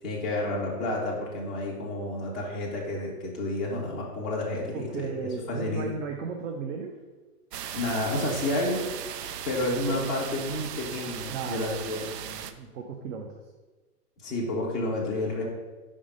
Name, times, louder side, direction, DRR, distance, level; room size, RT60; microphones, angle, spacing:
voice 1, 0.0-5.9 7.7-8.8 9.4-12.1 14.2-15.4, left 1 dB, ahead, -13 dB, 0.3 m, -30 dB
voice 2, 4.7-6.9 11.3-11.9 12.2-13.3, right 5 dB, 50° right, 2 dB, 0.8 m, -35 dB
sound 1, 7.5-12.5, right 9 dB, 90° right, 0.6 m, -37 dB
5.0 x 3.6 x 5.2 m, 1.2 s
hypercardioid pair, 135°, 47 cm